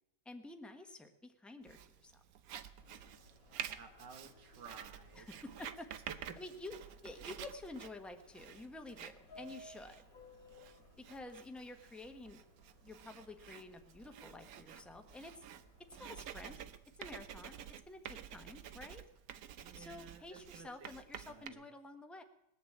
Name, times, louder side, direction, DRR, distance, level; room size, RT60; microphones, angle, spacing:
voice 1, 0.2-2.2 5.1-5.9 6.4-10.0 11.0-12.4 12.8-15.5 15.9-16.6 17.0-17.6 17.9-19.0 19.7-22.2, left 2 dB, ahead, 6 dB, 0.8 m, -50 dB
Writing, 1.7-21.5, right 9 dB, 65° right, 1.1 m, -50 dB
Subway metro underground, 2.8-16.6, left 1 dB, 55° left, 2.2 m, -62 dB
voice 2, 3.8-5.3 6.3-6.4 19.6-20.9 21.3-21.6, right 5 dB, 85° right, 6 dB, 2.1 m, -54 dB
20.5 x 7.1 x 8.5 m, 0.92 s
omnidirectional pair, 1.8 m